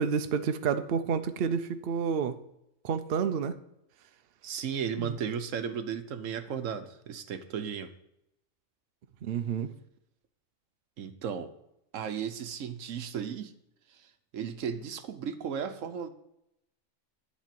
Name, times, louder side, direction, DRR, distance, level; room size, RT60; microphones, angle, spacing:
voice 1, 0.0-2.4 2.8-3.5 5.0-5.2 9.2-9.7, right 6 dB, 60° right, 0.7 m, -29 dB
voice 2, 4.4-7.9 11.0-11.5 11.9-13.5 13.9-14.1 14.3-16.1, right 7 dB, 75° right, 1.1 m, -35 dB
10.0 x 4.2 x 7.5 m
omnidirectional pair, 1.4 m